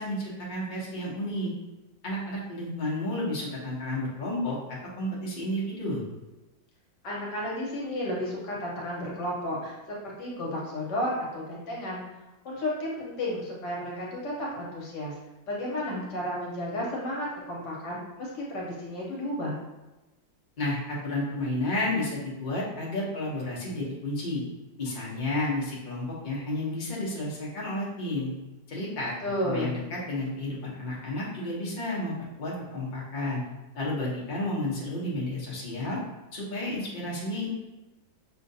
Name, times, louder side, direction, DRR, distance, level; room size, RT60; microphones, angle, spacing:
voice 1, 0.0-1.5 2.0-6.0 20.6-24.4 24.8-28.3 28.7-29.1 29.4-32.1 32.4-33.4 33.7-36.0 36.3-37.5, left 1 dB, 35° left, -6 dB, 0.9 m, -31 dB
voice 2, 7.0-12.0 12.4-15.1 15.5-19.6 29.2-29.8, left 1 dB, 70° left, -4 dB, 1.5 m, -32 dB
5.7 x 2.5 x 2.7 m, 1.1 s
omnidirectional pair, 1.9 m